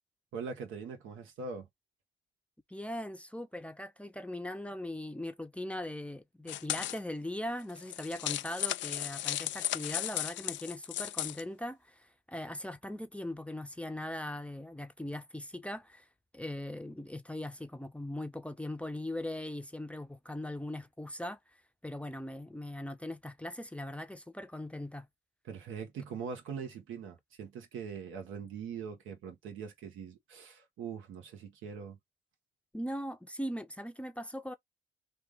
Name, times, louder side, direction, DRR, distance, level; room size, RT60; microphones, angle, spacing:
voice 1, 0.3-1.7 25.5-32.0, right 6 dB, 85° right, 1.2 m, -42 dB
voice 2, 2.7-16.1 16.3-21.4 21.8-25.1 32.7-34.5, left 1 dB, 5° left, 0.6 m, -40 dB
sound 1, 6.5-7.0 7.7-11.4, left 14 dB, 70° left, 0.4 m, -35 dB
3.3 x 2.5 x 3.4 m
cardioid pair, 90°, 20 cm